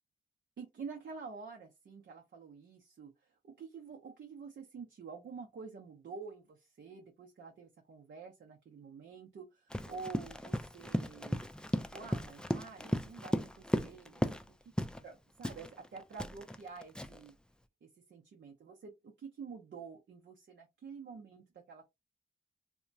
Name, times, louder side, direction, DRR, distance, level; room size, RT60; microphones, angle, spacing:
voice 1, 0.6-3.1 3.4-11.4 11.7-14.2 14.8-17.3 17.8-21.9, right 5 dB, 65° right, 0.7 m, -48 dB
Run, 9.7-14.5 14.8-15.0 15.4-17.3, equal, 5° left, 0.3 m, -36 dB
2.8 x 2.2 x 2.6 m
cardioid pair, 65°, 20 cm